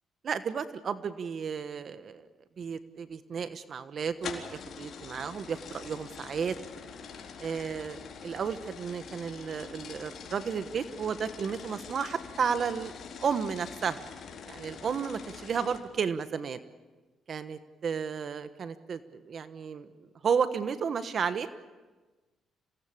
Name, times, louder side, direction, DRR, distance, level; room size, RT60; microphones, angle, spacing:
voice 1, 0.2-2.3 2.6-6.6 7.4-12.9 13.2-14.0 14.5-16.6 17.3-19.9 20.2-21.5, right 6 dB, 55° right, 11 dB, 1.2 m, -33 dB
sound 1, 4.2-15.8, left 6 dB, 60° left, 4.0 m, -44 dB
27.0 x 18.5 x 8.6 m, 1.3 s
cardioid pair, 90°, 0 cm